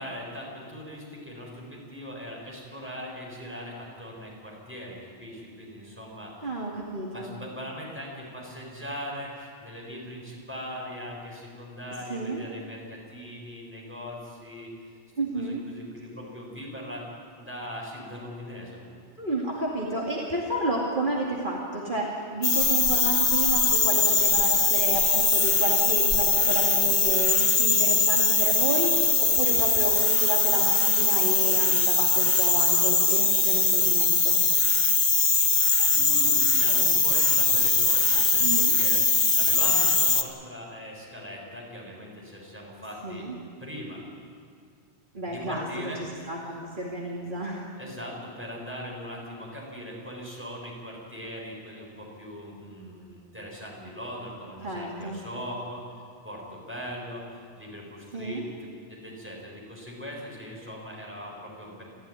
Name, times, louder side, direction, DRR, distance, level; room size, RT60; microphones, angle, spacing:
voice 1, 0.0-6.6 7.1-14.7 15.3-17.1 17.3-19.1 35.9-39.0 39.3-43.3 43.6-44.0 45.3-46.0 47.8-55.8 56.2-57.2 57.6-61.8, equal, 10° right, -3 dB, 6.7 m, -40 dB
voice 2, 6.4-7.3 12.1-12.4 15.2-15.6 19.2-34.4 38.4-38.8 43.0-43.3 45.1-45.7 46.0-47.6 54.6-55.2 58.1-58.4, right 1 dB, 45° right, -3 dB, 2.7 m, -31 dB
sound 1, 22.4-40.2, left 4 dB, 40° left, 1.5 m, -21 dB
26.5 x 15.0 x 9.8 m, 2.2 s
omnidirectional pair, 1.2 m